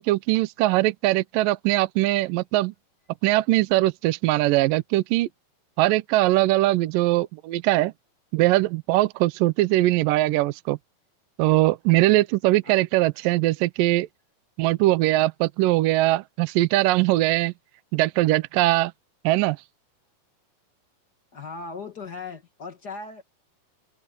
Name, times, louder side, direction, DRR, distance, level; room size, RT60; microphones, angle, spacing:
voice 1, 0.0-2.7 3.2-5.3 5.8-7.9 8.3-10.8 11.4-14.1 14.6-17.5 17.9-18.9 19.2-19.6, right 17 dB, 75° right, 2.3 m, -21 dB
voice 2, 21.3-23.2, left 4 dB, 40° left, 1.4 m, -37 dB
omnidirectional pair, 4.3 m